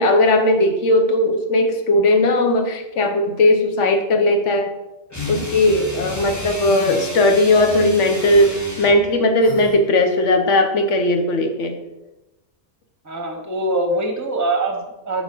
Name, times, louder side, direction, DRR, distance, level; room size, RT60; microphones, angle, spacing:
voice 1, 0.0-4.7 5.3-11.8, left 1 dB, 75° left, 6 dB, 1.2 m, -17 dB
sound 1, 5.1-5.5 6.6-7.1 8.1-8.5 9.4-9.8, left 4 dB, 40° left, 1.0 m, -32 dB
sound 2, 5.1-9.1, equal, 15° left, 1.0 m, -32 dB
voice 2, 13.0-15.2, right 2 dB, 15° right, 4 dB, 0.9 m, -23 dB
7.1 x 4.3 x 5.3 m, 0.99 s
omnidirectional pair, 1.2 m